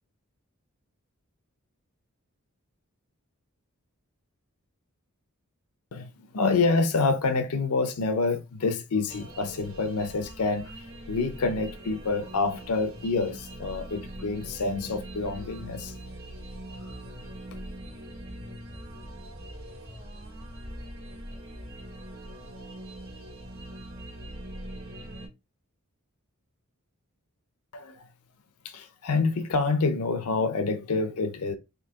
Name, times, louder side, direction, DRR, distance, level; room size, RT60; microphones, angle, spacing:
voice 1, 5.9-10.7 11.1-15.9 27.7-28.1 28.6-31.5, left 3 dB, 80° left, 0.6 m, -27 dB
sound 1, 9.1-25.3, right 1 dB, 70° right, 2.2 m, -42 dB
4.5 x 2.7 x 3.5 m
head